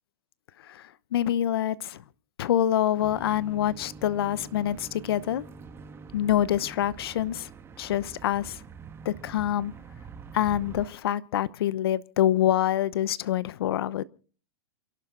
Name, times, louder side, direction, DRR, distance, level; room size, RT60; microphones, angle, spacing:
voice 1, 0.6-2.0 2.4-5.4 6.1-7.5 7.8-8.6 9.0-9.7 10.3-14.0, left 11 dB, 70° left, 0.9 m, -26 dB
sound 1, 3.0-10.9, right 5 dB, 20° right, 1.6 m, -45 dB
28.0 x 12.0 x 3.9 m
hypercardioid pair, 125°, 13 cm